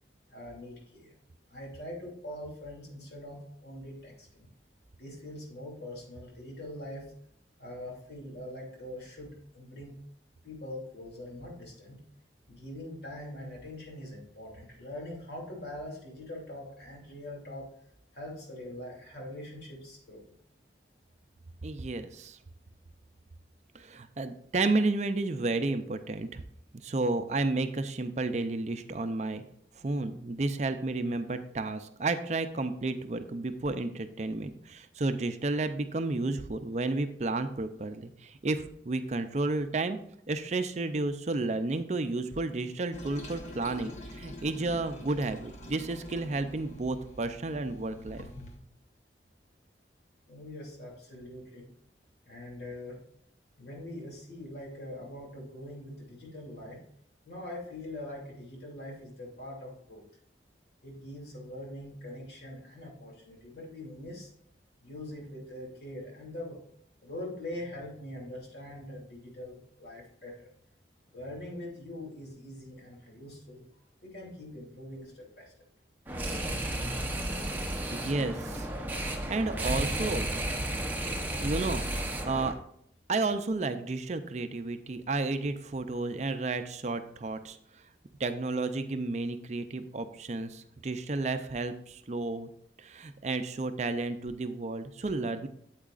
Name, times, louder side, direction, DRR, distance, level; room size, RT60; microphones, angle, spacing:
voice 1, 0.3-1.2 1.5-4.5 5.0-7.1 7.6-10.0 10.4-12.0 12.5-17.7 18.1-20.4 50.3-51.6 52.2-53.0 53.6-56.8 57.2-60.0 60.8-64.3 64.8-66.6 67.0-70.5 71.1-73.6 74.0-75.5, left 1 dB, 70° left, -2 dB, 2.8 m, -43 dB
voice 2, 21.6-22.4 23.7-26.4 26.8-29.4 29.8-40.0 40.3-48.3 77.9-78.7 79.3-80.3 81.4-82.5 83.1-87.6 88.2-92.5 92.8-95.5, right 3 dB, 40° right, 9 dB, 0.5 m, -32 dB
Toilet flush, 42.9-48.6, left 1 dB, 40° left, 1.1 m, -46 dB
sound 1, 76.1-82.5, right 1 dB, 10° right, 0.8 m, -33 dB
8.6 x 8.1 x 2.5 m, 0.69 s
head